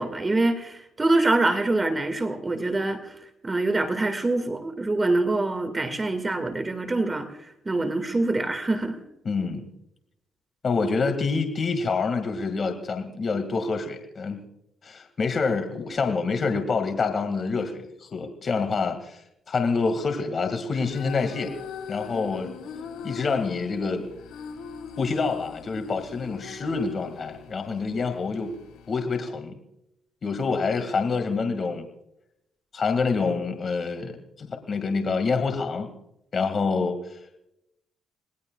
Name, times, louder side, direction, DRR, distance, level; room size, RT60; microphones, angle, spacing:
voice 1, 0.0-3.2 3.4-9.0, right 2 dB, 20° right, 8 dB, 1.9 m, -25 dB
voice 2, 9.2-9.7 10.6-14.4 14.8-19.2 19.5-21.6 21.9-22.5 23.0-24.0 25.0-28.5 28.9-29.6 30.2-31.9 32.7-35.9 36.3-37.2, left 4 dB, 45° left, 6 dB, 2.0 m, -27 dB
sound 1, 20.7-28.9, left 6 dB, 85° left, 1.7 m, -41 dB
27.0 x 19.5 x 2.3 m, 0.81 s
cardioid pair, 90°, 0 cm